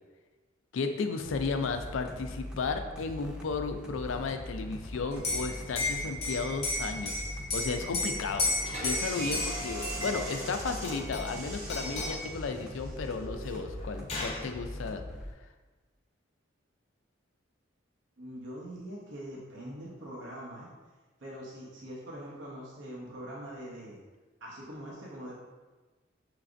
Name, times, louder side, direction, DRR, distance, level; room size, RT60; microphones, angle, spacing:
voice 1, 0.7-7.2 7.5-8.5 8.8-15.0, left 4 dB, 80° left, 7 dB, 0.4 m, -34 dB
sound 1, 1.2-15.3, left 1 dB, 5° right, 0.4 m, -42 dB
Liquid, 5.1-10.4 10.8-11.4 11.7-12.3 13.4-13.5 13.8-14.4, left 2 dB, 30° left, 0.7 m, -33 dB
sound 2, 8.6-14.0, right 2 dB, 35° right, 0.8 m, -41 dB
voice 2, 18.2-20.7 21.2-24.0 24.4-25.3, equal, 70° right, -5 dB, 0.8 m, -43 dB
5.9 x 3.2 x 2.5 m, 1.3 s
head